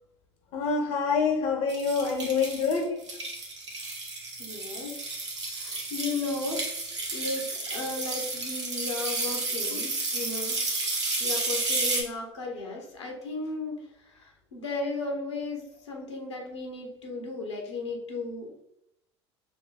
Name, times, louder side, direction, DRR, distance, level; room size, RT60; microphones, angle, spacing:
voice 1, 0.5-2.9, left 5 dB, 45° left, 2 dB, 0.8 m, -26 dB
sound 1, 1.7-12.0, right 3 dB, 80° right, 1.0 m, -32 dB
voice 2, 4.4-4.9 5.5-6.6 7.1-10.6 11.2-13.8 14.2-18.6, left 3 dB, 75° left, 1 dB, 1.1 m, -35 dB
5.9 x 2.2 x 3.3 m, 0.78 s
figure-of-eight pair, 70°, 15 cm